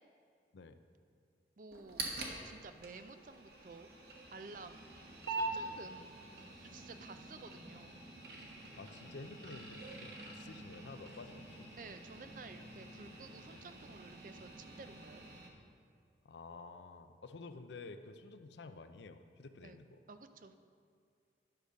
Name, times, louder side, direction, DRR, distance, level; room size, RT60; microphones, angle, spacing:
voice 1, 1.6-2.0 2.4-3.9 4.3-4.9 5.3-6.1 6.6-8.1 11.8-15.3 19.6-19.8 20.1-20.6, right 3 dB, 50° right, 9 dB, 0.4 m, -52 dB
sound 1, 1.7-15.5, right 2 dB, 65° right, 1.3 m, -46 dB
voice 2, 8.8-11.7 16.2-20.0, left 3 dB, 80° left, 9 dB, 0.5 m, -51 dB
10.5 x 6.7 x 5.1 m, 2.2 s
head